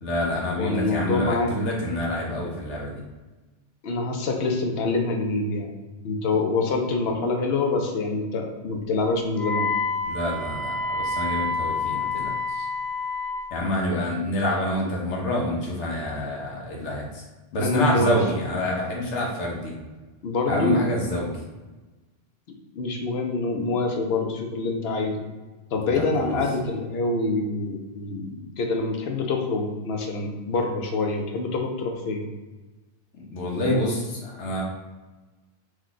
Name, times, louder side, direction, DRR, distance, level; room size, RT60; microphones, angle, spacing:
voice 1, 0.0-3.0 10.1-12.6 13.5-17.2 17.5-19.7 20.5-21.4 25.9-26.4 33.1-34.6, left 1 dB, 80° left, -2 dB, 1.2 m, -27 dB
voice 2, 0.6-1.5 3.8-5.7 6.0-9.7 17.6-18.2 20.2-20.8 22.7-25.2 25.7-32.3, left 3 dB, 65° left, 2 dB, 0.8 m, -26 dB
Wind instrument woodwind instrument, 9.3-13.4, left 3 dB, 25° left, 0.5 m, -28 dB
3.1 x 2.3 x 3.8 m, 1.2 s
omnidirectional pair, 1.2 m